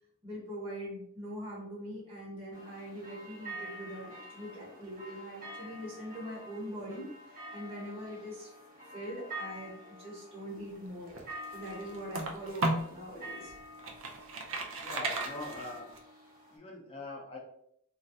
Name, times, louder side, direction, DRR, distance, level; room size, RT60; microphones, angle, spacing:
voice 1, 0.2-8.5 8.9-11.1 11.5-13.5, equal, 25° right, -7 dB, 1.1 m, -42 dB
sound 1, 2.5-16.6, right 1 dB, 45° right, 1.3 m, -47 dB
sound 2, 10.9-13.0 13.5-16.0, right 2 dB, 65° right, 0.5 m, -35 dB
voice 2, 14.8-15.9 16.5-17.4, left 2 dB, 25° left, -2 dB, 0.6 m, -42 dB
3.1 x 2.4 x 2.7 m, 0.70 s
head